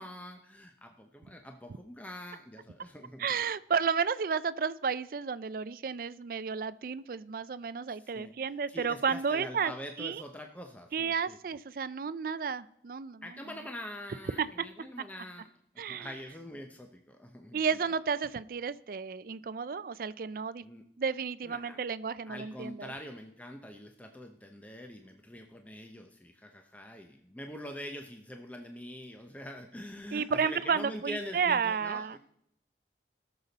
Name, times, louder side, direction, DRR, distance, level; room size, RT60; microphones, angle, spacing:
voice 1, 0.0-3.4 7.9-11.4 13.2-15.5 15.7-17.9 20.6-20.9 21.4-21.8 22.3-32.2, left 1 dB, 10° left, 4 dB, 0.7 m, -44 dB
voice 2, 3.2-9.7 10.0-10.2 10.9-13.2 14.4-14.5 15.8-16.1 17.5-20.6 21.0-22.9 30.1-32.2, right 6 dB, 55° right, 16 dB, 0.4 m, -32 dB
18.5 x 6.8 x 4.0 m, 0.73 s
head